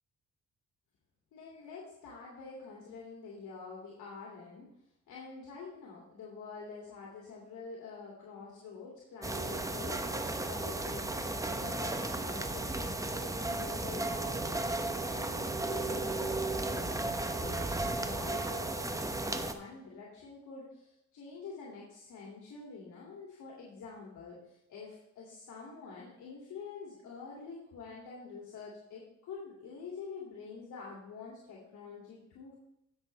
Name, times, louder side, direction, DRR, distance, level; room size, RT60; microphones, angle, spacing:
voice 1, 1.3-4.7 5.1-10.1 10.5-32.6, left 5 dB, 75° left, -4 dB, 2.4 m, -47 dB
sound 1, 9.2-19.5, right 2 dB, 10° right, 0.9 m, -34 dB
16.0 x 6.4 x 3.3 m, 0.83 s
cardioid pair, 90°, 30 cm